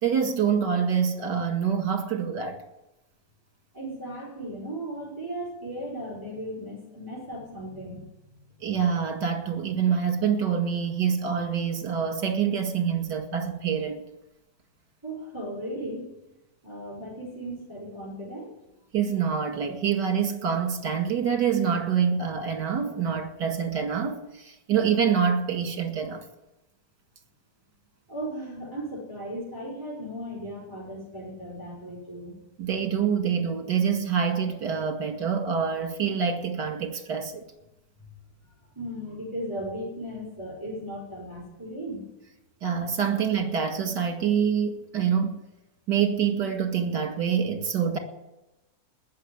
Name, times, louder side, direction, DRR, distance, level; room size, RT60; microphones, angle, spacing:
voice 1, 0.0-2.6 8.6-14.0 18.9-26.3 32.6-37.4 42.6-45.4 45.9-48.0, right 7 dB, 70° right, 2.6 m, -26 dB
voice 2, 3.7-8.3 15.0-16.1 16.6-18.5 28.1-32.3 38.4-42.0, right 1 dB, 10° right, 5.7 m, -36 dB
19.5 x 6.9 x 10.0 m
omnidirectional pair, 2.0 m